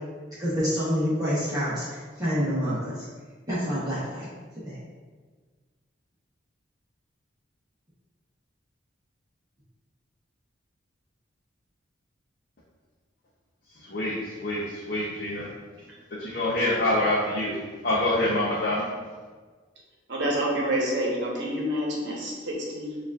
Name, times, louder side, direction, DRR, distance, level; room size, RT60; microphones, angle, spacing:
voice 1, 0.4-3.0 3.5-4.3 4.6-4.8, equal, 20° right, -10 dB, 0.8 m, -27 dB
voice 2, 13.8-15.5 16.2-17.5 17.8-18.9, left 1 dB, 50° left, -7 dB, 0.6 m, -26 dB
voice 3, 20.1-23.0, equal, 60° right, -3 dB, 0.9 m, -28 dB
6.9 x 2.4 x 2.3 m, 1.4 s
head